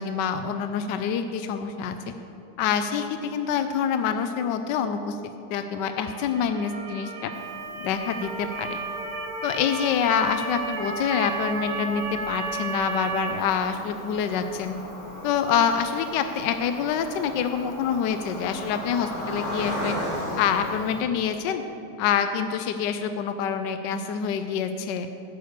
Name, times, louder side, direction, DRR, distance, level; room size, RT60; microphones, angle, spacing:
voice 1, 0.0-1.9 2.6-5.2 5.5-7.3 7.8-8.8 9.4-14.7 15.2-20.0 20.4-21.6 22.0-25.1, left 7 dB, 75° left, 8 dB, 1.0 m, -26 dB
Motor vehicle (road) / Siren, 5.9-13.3, right 3 dB, 80° right, 2.4 m, -33 dB
Cricket, 7.3-21.0, left 1 dB, 35° left, 3.3 m, -38 dB
11.5 x 6.7 x 8.0 m, 2.8 s
omnidirectional pair, 2.4 m